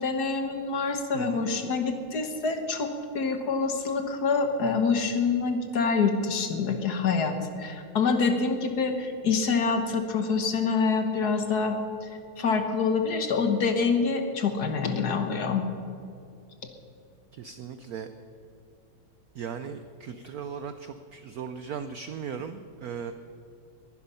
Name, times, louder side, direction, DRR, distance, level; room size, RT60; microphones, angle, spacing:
voice 1, 0.0-12.1 12.4-15.6, left 4 dB, 55° left, 6 dB, 1.6 m, -26 dB
voice 2, 1.1-1.5 17.3-18.1 19.3-23.1, right 7 dB, 75° right, 10 dB, 0.8 m, -37 dB
21.0 x 10.5 x 5.6 m, 2.5 s
omnidirectional pair, 2.3 m